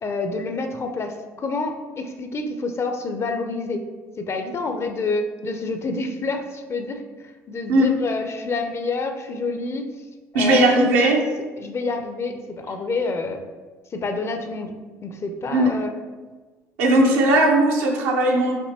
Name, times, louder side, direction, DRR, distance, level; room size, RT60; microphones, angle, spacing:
voice 1, 0.0-3.8 4.2-9.9 10.3-11.2 11.6-13.4 13.9-14.7 15.0-15.9, left 3 dB, 35° left, 6 dB, 0.6 m, -28 dB
voice 2, 10.3-11.2 15.5-15.7 16.8-18.6, right 1 dB, 75° right, 0 dB, 0.8 m, -18 dB
6.0 x 2.9 x 2.9 m, 1.3 s
hypercardioid pair, 60°, 8 cm